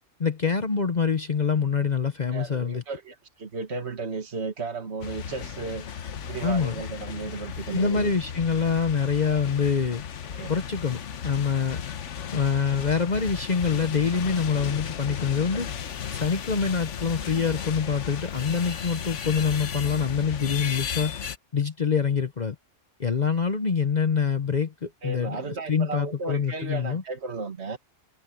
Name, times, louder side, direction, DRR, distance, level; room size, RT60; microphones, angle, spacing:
voice 1, 0.2-2.8 6.4-6.7 7.7-10.0 10.5-11.8 12.3-15.7 16.1-21.2 21.5-22.5 23.0-27.0, left 6 dB, 40° left, 0.9 m, -25 dB
voice 2, 2.3-5.8 6.2-8.1 10.3-10.5 25.0-27.8, right 4 dB, 60° right, 2.2 m, -34 dB
sound 1, 5.0-21.4, left 8 dB, 70° left, 1.2 m, -35 dB
omnidirectional pair, 1.3 m